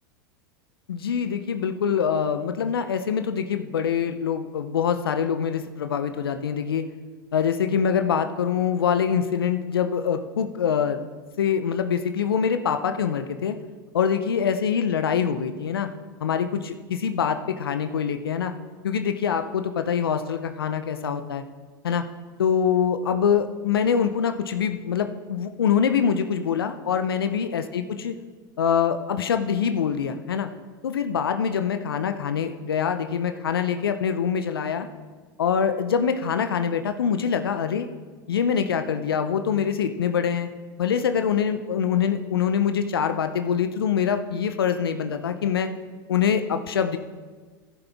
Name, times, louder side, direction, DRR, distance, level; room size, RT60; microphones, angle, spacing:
voice 1, 0.9-6.9 7.3-11.0 11.4-13.6 13.9-15.9 16.2-18.5 18.8-21.4 21.8-22.1 22.4-28.1 28.6-30.5 30.8-34.9 35.4-37.9 38.3-40.5 40.8-45.7 46.1-47.0, left 7 dB, 85° left, 8 dB, 0.7 m, -24 dB
14.5 x 7.1 x 3.5 m, 1.4 s
hypercardioid pair, 95°, 12 cm